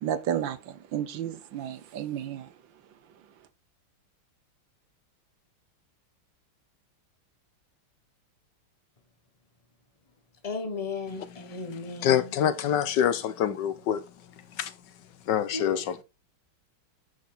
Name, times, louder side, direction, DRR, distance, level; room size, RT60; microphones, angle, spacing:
voice 1, 0.0-2.5, right 9 dB, 65° right, 1.5 m, -32 dB
voice 2, 10.4-12.3 15.5-16.0, left 4 dB, 25° left, 0.8 m, -35 dB
voice 3, 12.0-14.0 14.6-14.7 15.3-16.0, left 9 dB, 65° left, 1.3 m, -25 dB
9.5 x 5.0 x 4.1 m
omnidirectional pair, 2.3 m